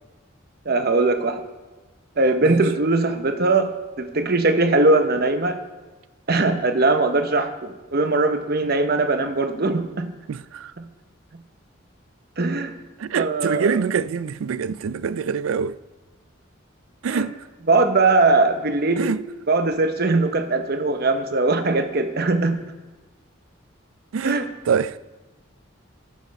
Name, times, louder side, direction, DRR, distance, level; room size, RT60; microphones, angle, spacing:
voice 1, 0.6-1.4 2.2-5.6 6.3-10.1 10.8-10.9 12.4-12.7 13.1-13.8 17.1-17.3 17.7-19.1 19.5-22.6 24.2-24.5, right 3 dB, 50° right, 0.9 m, -20 dB
voice 2, 10.3-10.7 13.0-15.7 17.0-17.3 19.0-19.2 24.1-24.4 24.7-25.0, right 6 dB, 85° right, 0.4 m, -25 dB
13.5 x 6.6 x 5.3 m
head